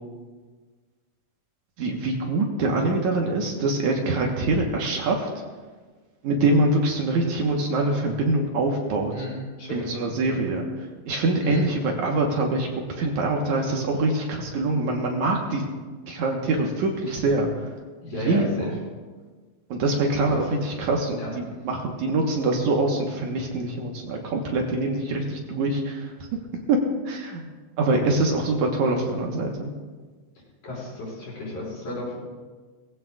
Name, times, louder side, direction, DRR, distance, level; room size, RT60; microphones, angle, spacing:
voice 1, 1.8-5.3 6.2-9.1 9.7-10.7 11.1-12.7 13.0-15.6 16.1-17.7 18.1-18.7 19.7-26.1 26.7-26.8 27.1-27.4 27.8-29.7, right 2 dB, 70° right, 0 dB, 2.6 m, -24 dB
voice 2, 9.1-10.0 11.4-11.7 18.0-18.6 20.2-20.5 21.2-21.3 30.6-32.2, left 1 dB, 70° left, -8 dB, 6.6 m, -33 dB
20.0 x 16.0 x 2.5 m, 1.4 s
omnidirectional pair, 3.6 m